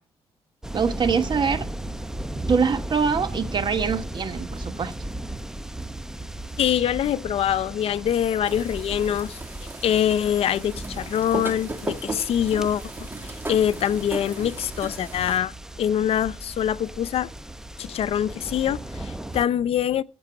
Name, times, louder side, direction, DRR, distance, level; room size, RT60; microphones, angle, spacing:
sound 1, 0.6-19.5, right 1 dB, 5° right, 0.8 m, -36 dB
voice 1, 0.7-1.7 2.5-4.9, right 5 dB, 45° right, 1.3 m, -24 dB
voice 2, 6.6-9.4 9.8-12.8 13.2-15.5 15.8-17.3 17.8-20.0, left 10 dB, 70° left, 0.6 m, -24 dB
sound 2, 8.4-15.4, right 2 dB, 20° right, 1.6 m, -36 dB
13.0 x 6.9 x 5.8 m
cardioid pair, 95°, 10 cm